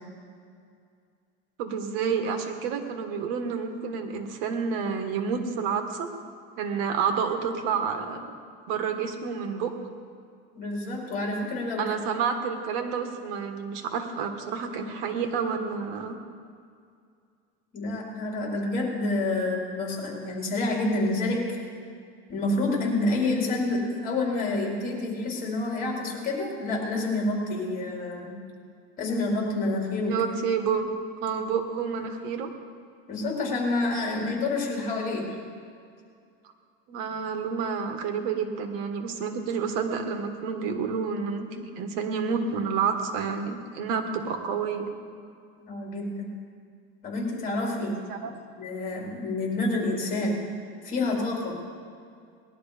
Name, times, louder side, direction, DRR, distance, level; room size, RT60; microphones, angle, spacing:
voice 1, 1.6-6.1 6.6-8.3 8.7-9.7 11.8-16.2 30.1-30.9 31.2-32.5 36.9-44.9 48.1-48.3, right 6 dB, 75° right, 6 dB, 1.6 m, -29 dB
voice 2, 10.5-11.8 17.7-21.5 22.3-28.3 29.0-30.1 33.1-35.3 45.7-46.3 47.0-48.0 48.6-50.4 50.8-51.6, left 2 dB, 30° left, -2 dB, 4.1 m, -28 dB
20.0 x 12.0 x 5.1 m, 2.3 s
cardioid pair, 160°, 29 cm